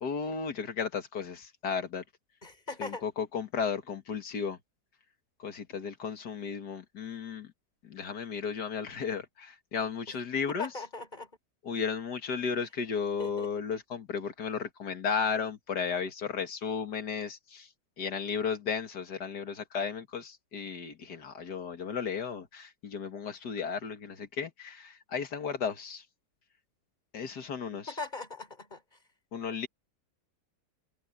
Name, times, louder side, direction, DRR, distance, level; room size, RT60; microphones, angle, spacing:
voice 1, 0.0-2.0 2.8-4.6 5.4-7.5 7.8-10.7 11.6-17.7 18.0-26.0 27.1-28.0 29.3-29.7, left 6 dB, 70° left, 2.4 m, -34 dB
voice 2, 2.4-3.0 10.6-11.3 13.2-13.5 27.9-28.8, left 3 dB, 25° left, 5.3 m, -39 dB
open air
omnidirectional pair, 1.8 m